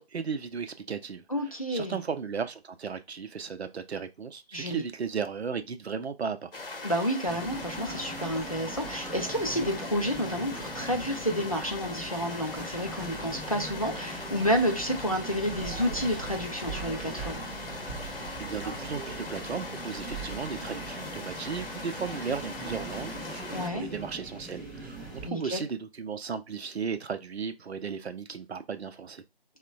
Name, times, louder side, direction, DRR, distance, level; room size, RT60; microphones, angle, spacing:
voice 1, 0.0-1.2 1.7-6.5 18.4-29.2, right 6 dB, 80° right, 0.5 m, -35 dB
voice 2, 1.3-2.0 4.5-4.8 6.8-17.4 23.5-23.9 25.2-25.6, equal, 35° left, 0.4 m, -30 dB
sound 1, 6.5-23.7, left 3 dB, 60° left, 0.8 m, -40 dB
sound 2, 7.3-25.3, right 2 dB, 15° right, 0.6 m, -41 dB
3.0 x 2.1 x 2.5 m
figure-of-eight pair, 155°, 32 cm